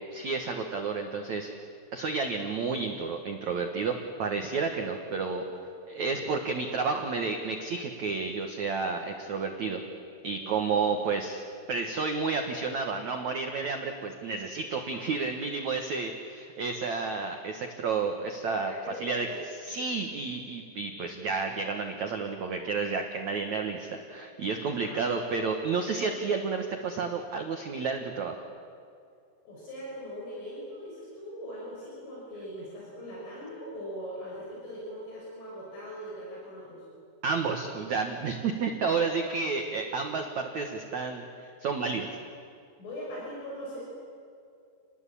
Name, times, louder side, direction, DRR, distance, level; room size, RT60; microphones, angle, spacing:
voice 1, 0.1-1.5 1.9-5.4 5.9-9.8 10.2-11.4 11.7-18.7 19.0-19.3 19.6-28.4 37.2-42.1, right 4 dB, 90° right, 4 dB, 1.6 m, -31 dB
voice 2, 10.4-11.0 14.9-15.2 18.6-19.4 24.8-25.0 29.5-36.8 42.8-43.8, equal, 75° left, -4 dB, 8.7 m, -41 dB
30.0 x 20.5 x 8.6 m, 2.4 s
omnidirectional pair, 5.8 m